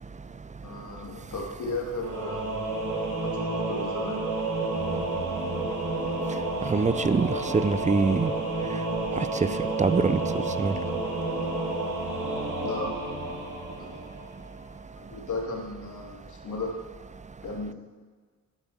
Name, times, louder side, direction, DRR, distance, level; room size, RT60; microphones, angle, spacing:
voice 1, 0.6-2.6 3.4-4.2 12.6-13.0 13.8-13.9 15.0-16.7 17.4-17.7, left 2 dB, 75° left, -1 dB, 2.4 m, -35 dB
Singing / Musical instrument, 2.0-14.5, right 2 dB, 90° right, 2.3 m, -30 dB
voice 2, 6.7-7.3 7.5-8.3 9.2-9.3 9.8-10.2 10.6-10.7, right 4 dB, 25° right, 14 dB, 0.4 m, -23 dB
9.8 x 8.1 x 7.1 m, 1.5 s
wide cardioid pair, 120°, 30 cm